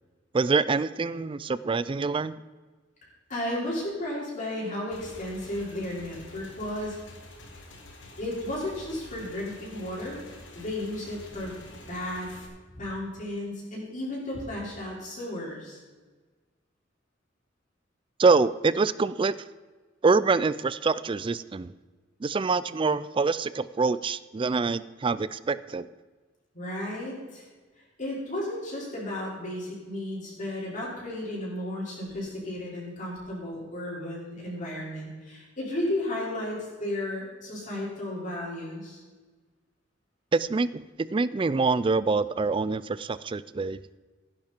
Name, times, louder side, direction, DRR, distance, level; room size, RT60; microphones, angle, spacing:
voice 1, 0.3-2.4 18.2-19.3 20.0-21.7 22.2-25.9 40.3-43.8, right 4 dB, 25° right, 17 dB, 0.4 m, -25 dB
voice 2, 3.3-7.0 8.2-10.2 10.5-11.6 11.9-12.3 12.8-15.8 26.5-27.5 28.0-39.0, left 1 dB, 45° left, -5 dB, 5.2 m, -34 dB
Motorcycle / Engine, 4.9-12.5, left 2 dB, 80° left, 2.4 m, -47 dB
15.5 x 10.5 x 4.5 m, 1.3 s
head